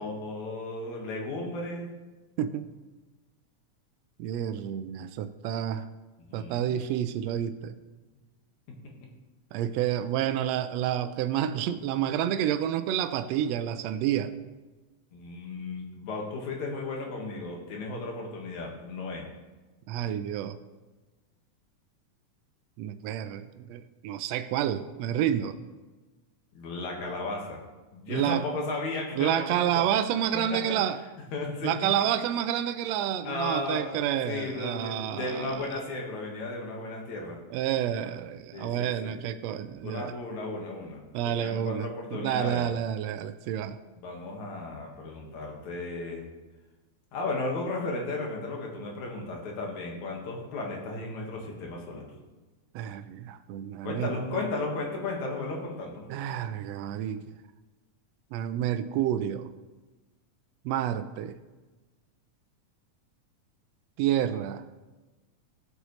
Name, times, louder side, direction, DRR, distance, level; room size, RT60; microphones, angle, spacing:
voice 1, 0.0-1.9 6.3-6.7 15.1-19.3 26.5-27.6 27.9-29.8 30.3-30.8 31.3-31.7 33.2-33.9 34.2-37.4 38.5-39.2 39.8-41.0 41.4-42.7 44.0-46.2 47.1-52.1 53.8-56.1, left 2 dB, 70° left, 0 dB, 2.9 m, -34 dB
voice 2, 2.4-2.7 4.2-5.9 6.3-7.7 9.5-14.3 19.9-20.6 22.8-25.6 28.1-28.4 29.1-31.0 31.6-35.7 37.5-40.1 41.1-43.8 52.7-54.4 56.1-57.3 58.3-59.5 60.6-61.4 64.0-64.6, right 10 dB, 85° right, 11 dB, 1.5 m, -29 dB
16.0 x 8.0 x 3.1 m, 1.2 s
omnidirectional pair, 3.6 m